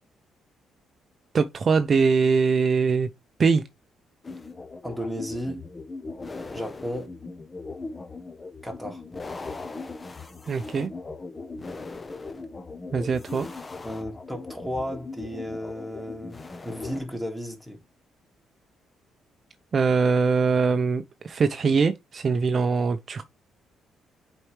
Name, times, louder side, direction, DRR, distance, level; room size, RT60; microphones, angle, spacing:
voice 1, 1.3-3.1 3.4-3.6 10.5-10.9 12.9-13.5 19.7-23.2, right 5 dB, 45° right, 0.5 m, -22 dB
sound 1, 4.2-17.0, left 3 dB, 25° left, 0.8 m, -39 dB
voice 2, 4.8-5.7 6.5-7.2 8.6-9.0 13.8-17.8, equal, 5° left, 2.3 m, -34 dB
7.7 x 4.5 x 3.2 m
cardioid pair, 90°, 0 cm